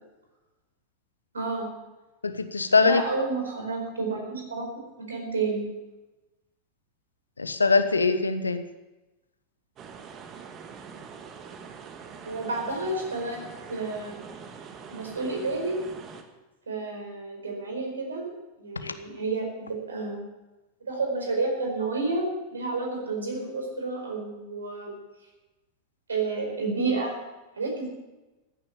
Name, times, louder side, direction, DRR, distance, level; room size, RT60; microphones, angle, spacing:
voice 1, 1.3-1.7 2.8-4.6 5.1-5.6 12.2-14.2 14.9-15.8 16.7-18.3 18.6-20.2 20.8-24.9 26.1-27.1 27.6-27.9, right 3 dB, 70° right, 2 dB, 4.7 m, -30 dB
voice 2, 2.2-3.0 7.4-8.6 18.8-18.9, left 4 dB, 80° left, 10 dB, 1.1 m, -22 dB
sound 1, 9.8-16.2, right 6 dB, 30° right, 1.7 m, -44 dB
15.0 x 10.5 x 7.2 m, 1.1 s
figure-of-eight pair, 90°, 0 cm